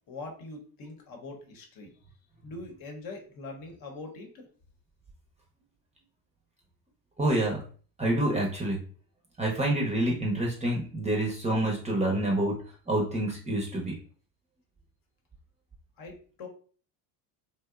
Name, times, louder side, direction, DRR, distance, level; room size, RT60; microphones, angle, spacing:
voice 1, 0.1-1.9 2.4-4.5 16.0-16.5, left 3 dB, 55° left, 2 dB, 0.8 m, -42 dB
voice 2, 7.2-7.6 8.0-8.8 9.4-12.6 12.9-13.9, right 1 dB, 15° right, -2 dB, 0.6 m, -27 dB
2.7 x 2.1 x 2.3 m, 0.42 s
supercardioid pair, 95°, 42 cm